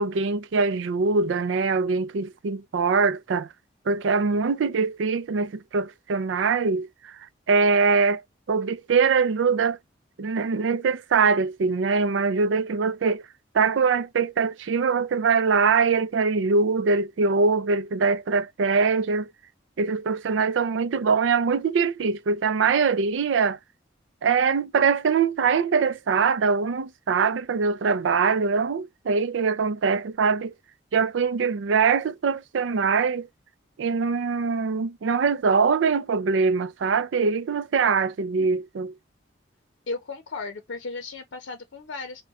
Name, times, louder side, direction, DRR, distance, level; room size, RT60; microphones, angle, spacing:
voice 1, 0.0-3.5 3.9-7.2 7.5-8.2 8.5-9.8 10.2-13.2 13.5-19.3 19.8-23.6 24.2-30.5 30.9-33.3 33.8-38.9, right 5 dB, 80° right, 0.4 m, -23 dB
voice 2, 39.9-42.2, left 3 dB, 80° left, 0.6 m, -35 dB
2.4 x 2.2 x 3.9 m
head